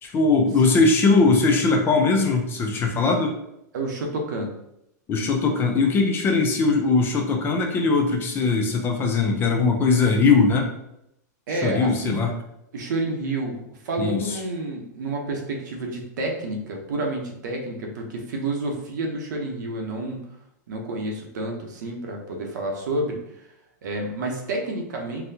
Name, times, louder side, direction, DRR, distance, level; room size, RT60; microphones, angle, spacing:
voice 1, 0.0-3.4 5.1-10.7 11.5-12.3 14.0-14.4, left 4 dB, 25° left, 2 dB, 0.5 m, -20 dB
voice 2, 3.7-4.5 11.5-12.2 12.7-13.6 13.8-20.2 20.7-23.2 23.8-25.2, right 2 dB, 75° right, 1 dB, 0.8 m, -29 dB
4.0 x 2.2 x 2.7 m, 0.81 s
hypercardioid pair, 140°, 10 cm